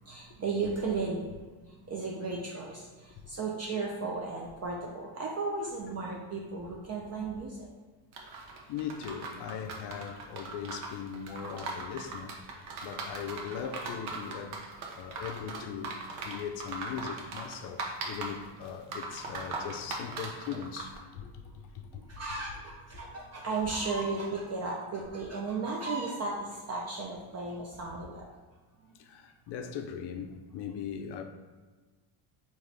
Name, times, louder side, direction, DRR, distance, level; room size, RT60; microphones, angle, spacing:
voice 1, 0.0-1.3 1.6-7.7 12.7-12.9 19.4-19.6 21.9-28.3 28.8-29.0, right 3 dB, 35° right, 0.4 m, -35 dB
sound 1, 8.1-21.0, right 3 dB, 75° right, 0.8 m, -40 dB
voice 2, 8.7-14.6 14.9-21.4 21.7-22.1 29.0-31.2, left 8 dB, 60° left, 0.5 m, -40 dB
3.6 x 2.6 x 3.2 m
cardioid pair, 110°, 48 cm